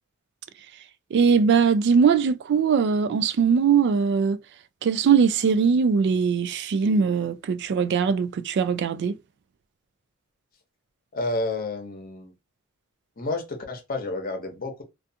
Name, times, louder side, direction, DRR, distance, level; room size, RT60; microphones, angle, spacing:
voice 1, 1.1-4.4 4.8-9.2, right 6 dB, 55° right, 0.3 m, -21 dB
voice 2, 11.1-12.3 13.2-14.8, left 2 dB, 45° left, 0.7 m, -30 dB
2.4 x 2.4 x 2.6 m
head